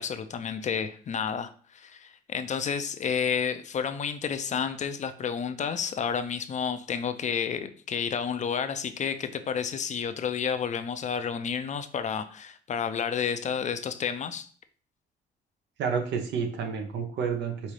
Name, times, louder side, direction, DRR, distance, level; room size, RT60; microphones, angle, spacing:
voice 1, 0.0-14.5, left 7 dB, 40° left, 10 dB, 0.5 m, -30 dB
voice 2, 15.8-17.7, right 6 dB, 80° right, 5 dB, 0.9 m, -30 dB
5.2 x 2.7 x 3.2 m, 0.44 s
cardioid pair, 90°, 18 cm